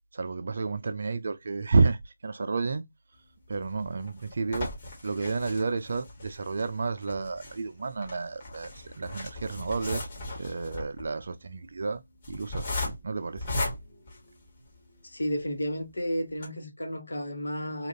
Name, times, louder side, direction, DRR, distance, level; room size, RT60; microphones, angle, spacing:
voice 1, 0.1-2.8 3.5-4.7 5.0-8.7 9.0-10.1 10.4-12.0 12.3-13.6, right 4 dB, 50° right, 0.4 m, -30 dB
sound 1, 3.5-14.9 15.4-15.5 15.8-15.9 16.3-16.5, left 2 dB, 35° left, 1.4 m, -37 dB
voice 2, 15.0-17.9, equal, 70° left, 1.0 m, -32 dB
2.8 x 2.4 x 2.6 m
figure-of-eight pair, 155°, 0 cm